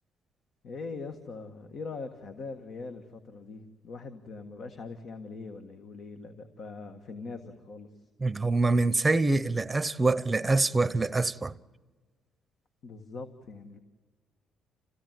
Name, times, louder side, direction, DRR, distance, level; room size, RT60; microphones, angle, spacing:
voice 1, 0.6-7.9 12.8-13.8, left 4 dB, 60° left, 1.6 m, -42 dB
voice 2, 8.2-11.6, right 3 dB, 20° right, 0.8 m, -25 dB
27.5 x 16.5 x 9.2 m
cardioid pair, 80°, 0 cm